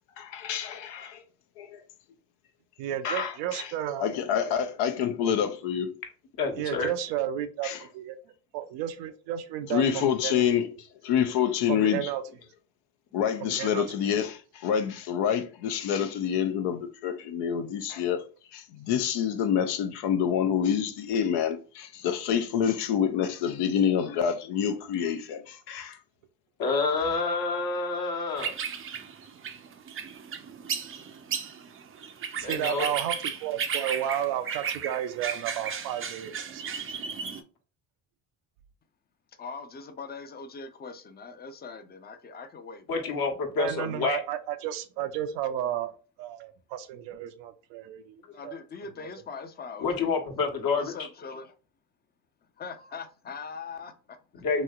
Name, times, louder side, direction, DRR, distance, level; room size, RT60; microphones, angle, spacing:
voice 1, 0.2-1.2 1.6-1.8 3.0-3.7 4.0-5.9 7.6-7.8 9.7-10.7 11.0-12.1 13.1-18.2 18.5-26.0, left 8 dB, 70° left, 0.6 m, -27 dB
voice 2, 2.8-4.3 6.6-8.2 8.5-10.5 11.7-12.2 13.4-14.1 32.4-37.0 43.6-45.9 46.2-48.6, right 11 dB, 75° right, 0.6 m, -33 dB
voice 3, 6.4-6.9 26.6-28.6 32.4-32.9 42.9-44.2 49.8-50.9 54.3-54.6, left 4 dB, 55° left, 1.1 m, -28 dB
sound 1, 28.4-37.4, right 7 dB, 30° right, 0.5 m, -35 dB
voice 4, 39.4-43.2 48.3-50.1 50.7-51.5 52.6-54.2, left 4 dB, 25° left, 0.5 m, -41 dB
3.0 x 2.8 x 2.3 m
supercardioid pair, 65°, 43 cm